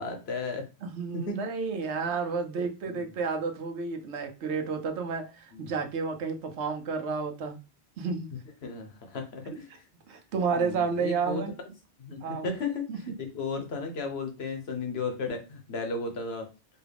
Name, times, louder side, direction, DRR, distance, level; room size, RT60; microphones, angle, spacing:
voice 1, 0.0-0.6 1.1-1.4 2.9-3.0 5.5-5.7 8.6-9.8 10.5-11.4 12.0-16.5, left 3 dB, 65° left, 4 dB, 1.1 m, -34 dB
voice 2, 0.8-7.6 8.0-8.3 10.1-11.5 12.2-12.5 12.9-13.0, right 5 dB, 80° right, 5 dB, 1.0 m, -31 dB
4.6 x 2.3 x 3.4 m, 0.30 s
omnidirectional pair, 1.1 m